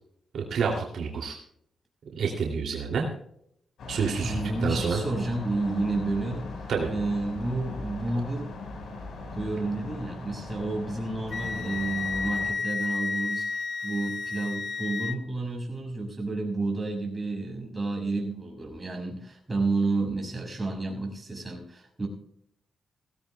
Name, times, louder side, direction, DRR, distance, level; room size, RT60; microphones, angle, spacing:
voice 1, 0.3-1.3 2.1-3.1 3.9-5.0 6.7-6.9, right 6 dB, 70° right, 1 dB, 2.7 m, -28 dB
sound 1, 3.8-12.5, left 3 dB, 85° left, 5.0 m, -39 dB
voice 2, 4.2-8.6 9.3-22.1, right 2 dB, 20° right, 0 dB, 6.5 m, -31 dB
Wind instrument woodwind instrument, 11.3-15.2, left 4 dB, 55° left, 1.1 m, -32 dB
20.0 x 17.0 x 2.3 m, 0.70 s
cardioid pair, 115°, 0 cm